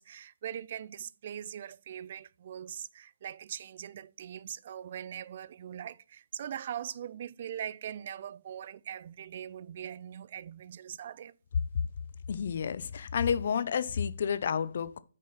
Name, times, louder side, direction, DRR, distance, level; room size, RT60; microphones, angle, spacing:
voice 1, 0.0-11.4, right 9 dB, 45° right, 0.3 m, -41 dB
voice 2, 12.3-15.0, left 7 dB, 55° left, 0.6 m, -30 dB
6.3 x 4.4 x 5.5 m
hypercardioid pair, 155°, 0 cm